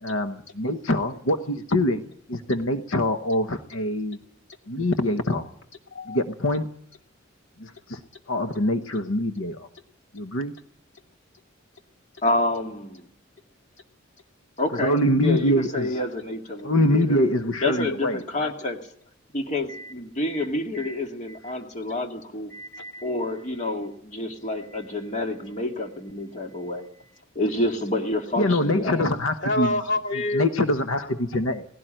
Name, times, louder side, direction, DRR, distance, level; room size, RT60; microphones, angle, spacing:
voice 1, 0.0-4.2 4.7-5.5 6.1-6.7 7.6-8.0 8.3-9.7 10.1-10.5 14.7-16.0 16.6-18.5 28.4-29.8 30.3-31.7, left 1 dB, 90° left, 1.1 m, -24 dB
voice 2, 12.2-13.1 14.6-17.2 17.6-18.9 19.3-22.5 23.0-26.9 27.4-29.1, left 2 dB, 35° left, 2.3 m, -28 dB
voice 3, 22.5-23.1 24.7-24.8 29.4-30.5, left 2 dB, 65° left, 2.5 m, -29 dB
18.5 x 17.0 x 9.0 m
head